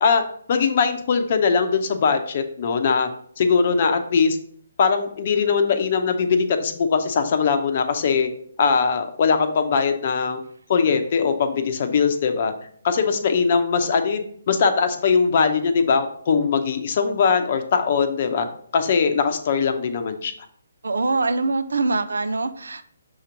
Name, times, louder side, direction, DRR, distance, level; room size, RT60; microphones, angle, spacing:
voice 1, 0.0-3.1 3.4-4.4 4.8-8.3 8.6-10.4 10.7-12.5 12.8-18.5 18.7-20.3, left 5 dB, 45° left, 7 dB, 0.7 m, -21 dB
voice 2, 20.8-22.8, right 3 dB, 75° right, 11 dB, 0.5 m, -23 dB
6.4 x 3.0 x 5.1 m, 0.62 s
figure-of-eight pair, 145°, 0 cm